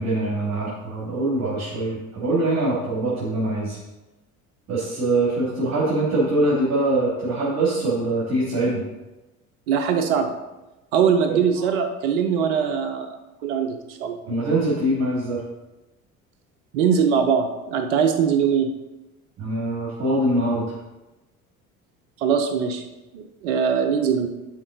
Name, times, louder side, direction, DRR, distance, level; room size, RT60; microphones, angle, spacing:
voice 1, 0.0-3.8 4.7-8.9 11.3-11.4 14.3-15.4 19.4-20.7, right 2 dB, 40° right, -6 dB, 2.7 m, -23 dB
voice 2, 9.7-10.3 10.9-13.2 13.4-14.2 16.7-18.7 22.2-22.8 23.1-24.3, right 7 dB, 60° right, 6 dB, 0.8 m, -21 dB
11.0 x 4.6 x 4.0 m, 1.0 s
figure-of-eight pair, 60°, 43 cm